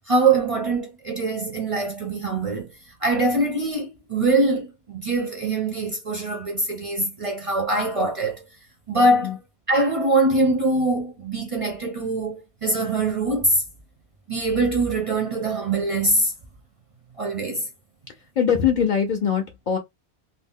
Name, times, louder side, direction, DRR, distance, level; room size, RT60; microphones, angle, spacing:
voice 1, 0.1-8.4 8.9-9.4 9.7-13.6 14.3-16.3 17.2-17.7, right 2 dB, 40° right, 0.6 m, -23 dB
voice 2, 18.1-19.8, left 7 dB, 55° left, 0.6 m, -22 dB
2.6 x 2.0 x 3.5 m
omnidirectional pair, 1.2 m